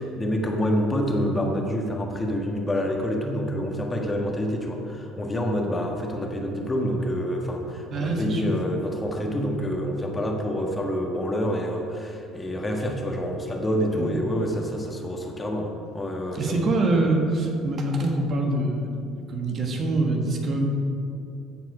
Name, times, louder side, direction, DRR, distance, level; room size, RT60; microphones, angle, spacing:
voice 1, 0.0-16.6, equal, 20° left, 1 dB, 1.4 m, -27 dB
voice 2, 7.9-8.4 14.0-14.1 16.3-18.9 19.3-20.7, right 2 dB, 50° right, 1 dB, 1.5 m, -24 dB
14.0 x 4.8 x 4.8 m, 2.7 s
hypercardioid pair, 65°, 0 cm